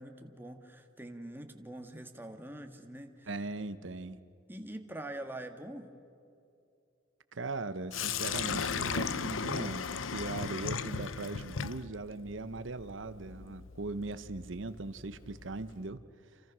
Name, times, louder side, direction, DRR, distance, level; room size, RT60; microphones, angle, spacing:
voice 1, 0.0-3.3 4.5-5.9, right 1 dB, 10° right, 5 dB, 1.6 m, -44 dB
voice 2, 3.3-4.2 7.3-16.0 16.3-16.4, right 3 dB, 75° right, 12 dB, 0.9 m, -39 dB
Sink (filling or washing), 7.9-15.8, left 6 dB, 85° left, 0.8 m, -37 dB
28.5 x 28.5 x 6.2 m, 2.6 s
head